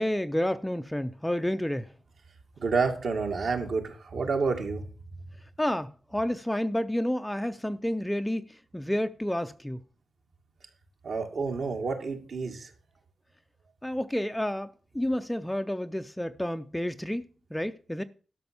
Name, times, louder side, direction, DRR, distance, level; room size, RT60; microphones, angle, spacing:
voice 1, 0.0-1.9 5.6-9.8 13.8-17.3 17.5-18.0, left 1 dB, 5° left, 0.5 m, -30 dB
voice 2, 2.6-4.9 11.0-12.7, right 4 dB, 65° right, 2.3 m, -29 dB
12.0 x 6.2 x 7.0 m
wide cardioid pair, 155°, 0 cm